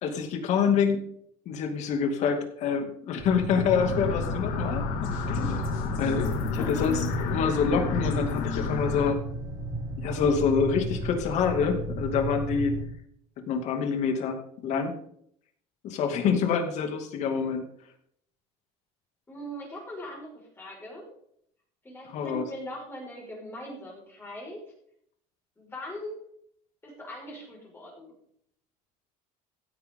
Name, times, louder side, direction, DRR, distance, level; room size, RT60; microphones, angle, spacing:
voice 1, 0.0-1.0 1.5-4.9 5.3-5.7 6.0-9.2 9.9-12.8 13.5-15.0 15.8-17.6 22.0-22.4, left 6 dB, 50° left, 5 dB, 2.5 m, -26 dB
sound 1, 3.2-12.9, right 2 dB, 25° right, 4.2 m, -34 dB
sound 2, 3.7-9.1, left 6 dB, 90° left, 4.0 m, -31 dB
voice 2, 19.3-21.1 21.8-24.7 25.6-26.2 26.8-28.1, equal, 15° left, -2 dB, 5.5 m, -41 dB
16.0 x 9.3 x 3.8 m, 0.67 s
cardioid pair, 155°, 15 cm